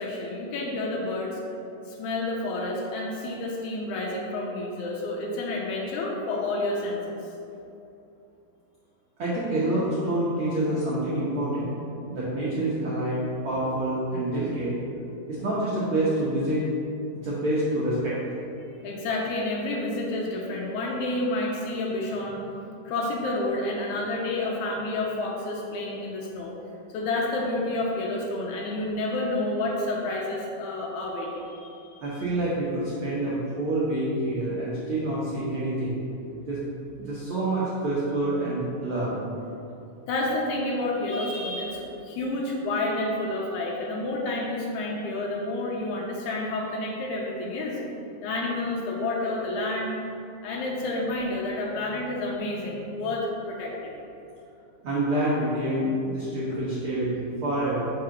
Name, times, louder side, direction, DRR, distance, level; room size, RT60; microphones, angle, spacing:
voice 1, 0.0-1.4 1.9-7.2 18.8-22.5 22.9-26.5 26.9-32.2 40.1-47.8 48.2-50.0 50.4-54.0 56.5-56.6, left 2 dB, 75° left, -2 dB, 1.8 m, -29 dB
voice 2, 9.2-11.8 12.1-14.7 15.3-16.6 17.2-18.1 32.0-36.0 36.5-36.6 37.0-39.2 54.8-57.9, right 1 dB, 80° right, -9 dB, 1.1 m, -27 dB
4.8 x 3.8 x 5.8 m, 2.7 s
omnidirectional pair, 4.0 m